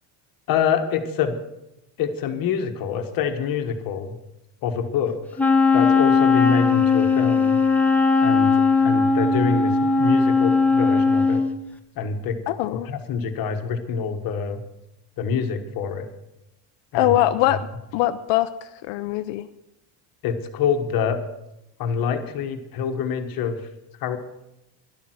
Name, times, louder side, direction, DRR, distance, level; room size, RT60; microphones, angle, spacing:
voice 1, 0.5-1.3 2.0-4.2 4.6-5.4 5.7-7.6 8.2-8.5 8.8-11.5 11.9-12.4 12.9-14.6 15.2-16.1 16.9-17.1 20.2-21.2 21.8-23.6 24.0-24.2, left 6 dB, 50° left, 7 dB, 1.5 m, -26 dB
Wind instrument woodwind instrument, 5.4-11.5, left 4 dB, 5° left, 0.8 m, -18 dB
voice 2, 12.5-12.9 16.9-17.6 17.9-18.5 18.9-19.5, left 14 dB, 65° left, 11 dB, 0.7 m, -21 dB
12.0 x 11.5 x 6.2 m, 0.89 s
cardioid pair, 155°, 46 cm